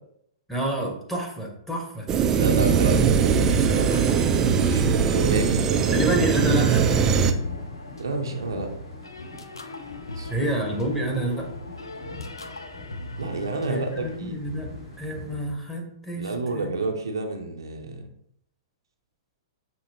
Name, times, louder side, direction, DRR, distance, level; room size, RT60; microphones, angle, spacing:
voice 1, 0.5-2.1 5.9-7.2 10.3-11.5 13.7-16.7, equal, 5° left, -1 dB, 0.9 m, -28 dB
sound 1, 2.1-7.3, right 6 dB, 20° right, 0.3 m, -21 dB
voice 2, 2.3-3.9 4.2-6.0 8.0-8.7 10.1-10.5 13.2-14.4 16.1-18.1, right 3 dB, 70° right, 3 dB, 0.6 m, -30 dB
sound 2, 3.3-14.2, left 1 dB, 75° left, 0.4 m, -38 dB
sound 3, 4.5-15.5, left 2 dB, 60° left, 1.6 m, -43 dB
5.8 x 2.8 x 2.7 m, 0.73 s
figure-of-eight pair, 110°, 2 cm